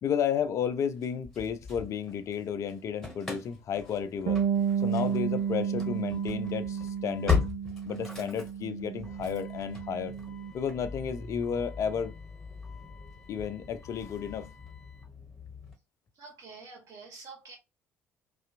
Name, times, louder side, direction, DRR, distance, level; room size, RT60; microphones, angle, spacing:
voice 1, 0.0-4.4 4.8-7.4 7.9-10.1 10.5-12.1 13.3-14.5, left 8 dB, 45° left, 0.4 m, -32 dB
Engine starting / Slam, 1.0-2.4 2.7-15.7, left 5 dB, 5° left, 1.1 m, -38 dB
Bass guitar, 4.3-10.5, right 8 dB, 65° right, 0.4 m, -32 dB
voice 2, 16.2-17.6, right 4 dB, 45° right, 1.1 m, -47 dB
2.6 x 2.4 x 2.4 m
figure-of-eight pair, 50°, 8 cm